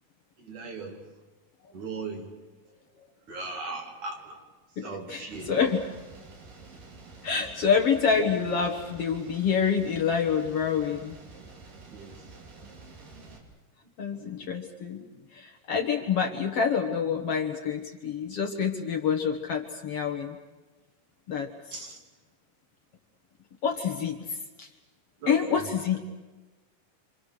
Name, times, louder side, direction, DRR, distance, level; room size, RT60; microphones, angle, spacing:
voice 1, 0.4-1.1 1.7-2.3 3.3-4.4 4.8-5.5 11.9-12.2 21.7-22.0 25.2-25.7, right 3 dB, 65° right, 1 dB, 4.2 m, -38 dB
voice 2, 4.8-5.9 7.2-11.2 14.0-20.4 21.3-21.5 23.6-24.7 25.3-26.0, left 6 dB, 55° left, 4 dB, 2.1 m, -27 dB
sound 1, 5.3-13.4, right 3 dB, 85° right, 4.9 m, -48 dB
27.5 x 26.5 x 6.5 m, 1.2 s
omnidirectional pair, 3.8 m